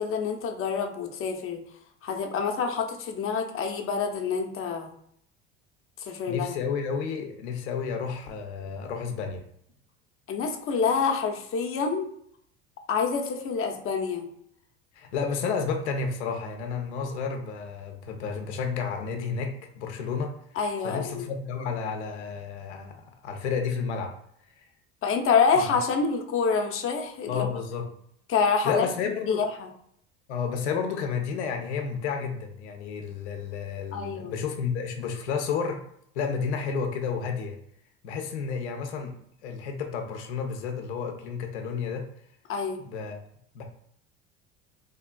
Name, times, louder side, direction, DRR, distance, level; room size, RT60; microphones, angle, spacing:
voice 1, 0.0-1.6 2.0-4.9 6.0-6.5 10.3-12.1 12.9-14.3 20.6-21.3 25.0-27.4 28.3-28.9 29.3-29.7 33.9-34.4 42.5-42.8, left 5 dB, 40° left, 3 dB, 0.6 m, -27 dB
voice 2, 6.3-9.4 14.9-20.3 20.8-24.1 24.6-24.7 27.3-27.9 28.6-29.5 30.3-35.8 36.2-37.6 38.0-39.1 39.4-42.1 42.8-43.2 43.5-43.6, left 5 dB, 85° left, 4 dB, 0.6 m, -31 dB
3.4 x 2.3 x 2.2 m, 0.69 s
hypercardioid pair, 80°, 33 cm